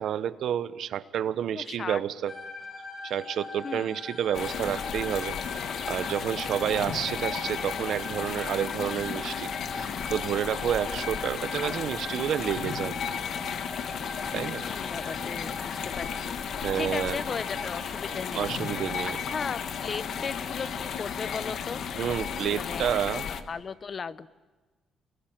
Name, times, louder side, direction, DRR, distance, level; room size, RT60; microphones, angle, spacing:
voice 1, 0.0-2.3 3.0-13.0 14.3-14.6 16.6-17.2 18.3-19.2 21.9-23.3, right 9 dB, 70° right, 14 dB, 1.0 m, -30 dB
voice 2, 1.5-2.0 3.6-4.0 14.4-21.8 22.5-22.9 23.5-24.3, left 5 dB, 45° left, 15 dB, 0.9 m, -37 dB
sound 1, 2.3-21.1, left 3 dB, 25° left, 4.0 m, -42 dB
sound 2, 4.3-23.4, left 7 dB, 65° left, 1.7 m, -34 dB
28.0 x 22.0 x 9.1 m, 1.3 s
cardioid pair, 90°, 0 cm